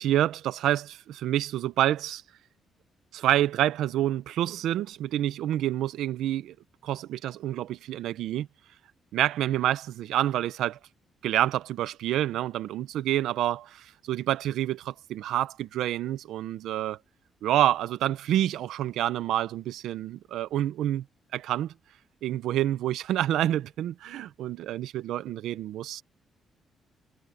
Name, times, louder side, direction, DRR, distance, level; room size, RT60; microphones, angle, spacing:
voice 1, 0.0-2.2 3.1-6.5 6.8-8.5 9.1-10.8 11.2-17.0 17.4-21.0 21.3-21.7 22.2-26.0, right 12 dB, 85° right, 0.9 m, -28 dB
cardioid pair, 95°, 0 cm